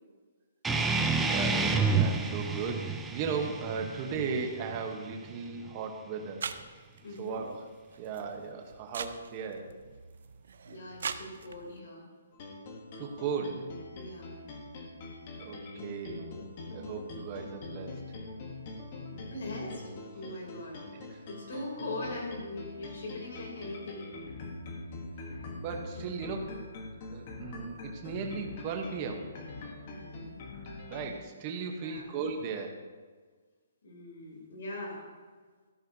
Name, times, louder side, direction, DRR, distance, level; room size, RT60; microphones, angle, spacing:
sound 1, 0.6-5.7, right 4 dB, 5° right, 0.4 m, -30 dB
voice 1, 1.2-6.5 7.2-7.7 8.0-9.7 13.0-13.7 15.4-16.3 16.7-18.0 20.9-21.3 25.6-26.6 27.1-29.3 30.8-32.9, right 5 dB, 20° right, 3 dB, 1.0 m, -36 dB
sound 2, 6.4-11.8, right 6 dB, 55° right, 0.6 m, -42 dB
voice 2, 7.0-7.4 10.6-12.0 13.9-14.3 19.1-20.8 21.3-24.1 29.8-30.4 31.7-32.0 33.8-35.0, left 2 dB, 55° left, -1 dB, 3.0 m, -41 dB
sound 3, 12.3-31.2, left 2 dB, 25° left, 1.1 m, -43 dB
13.5 x 12.5 x 2.7 m, 1.5 s
hypercardioid pair, 180°, 0 cm